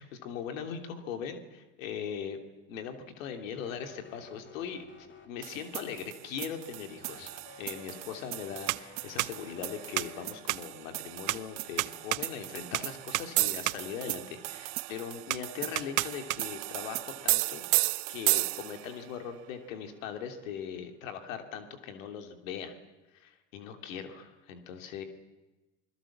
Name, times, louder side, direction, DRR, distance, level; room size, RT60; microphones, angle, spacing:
voice 1, 0.0-2.4 2.7-4.8 5.2-7.3 7.6-17.6 18.1-22.8 23.1-25.0, left 7 dB, 90° left, 6 dB, 3.0 m, -40 dB
sound 1, 3.5-5.7 7.0-10.4, left 5 dB, 30° left, 2.7 m, -53 dB
sound 2, 5.4-18.9, right 25 dB, 65° right, 0.9 m, -33 dB
28.5 x 21.0 x 7.4 m, 1.1 s
supercardioid pair, 120°, 39 cm